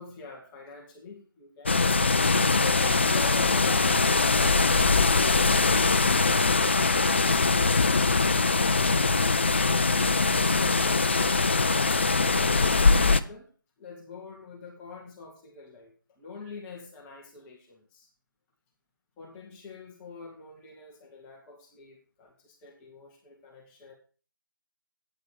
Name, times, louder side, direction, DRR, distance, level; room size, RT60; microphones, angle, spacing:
voice 1, 0.0-2.0 2.6-7.7 8.4-10.2 10.8-11.1 11.7-13.5 13.8-18.1 19.2-23.9, left 4 dB, 5° left, 0 dB, 0.9 m, -45 dB
sound 1, 1.7-13.2, left 3 dB, 35° left, 0.4 m, -22 dB
9.1 x 8.6 x 4.9 m, 0.39 s
figure-of-eight pair, 160°, 11 cm